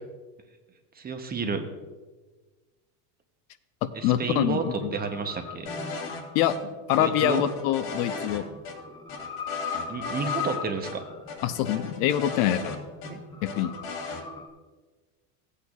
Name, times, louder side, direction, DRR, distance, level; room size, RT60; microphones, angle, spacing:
voice 1, 1.0-1.7 3.9-5.7 7.0-7.4 9.9-11.0 13.1-13.2, right 5 dB, 20° right, 6 dB, 0.7 m, -31 dB
voice 2, 3.8-4.9 6.3-6.6 6.9-8.4 11.4-12.8 13.4-13.7, left 11 dB, 60° left, 11 dB, 0.7 m, -25 dB
sound 1, 4.0-14.5, left 6 dB, 10° left, 0.3 m, -39 dB
sound 2, 5.7-6.2 6.5-6.6 6.9-8.4 8.7-8.8 9.1-10.6 10.8-10.9 11.3-13.1 13.5-14.2, left 4 dB, 80° left, 2.3 m, -37 dB
15.0 x 8.3 x 2.3 m, 1.3 s
supercardioid pair, 125°, 47 cm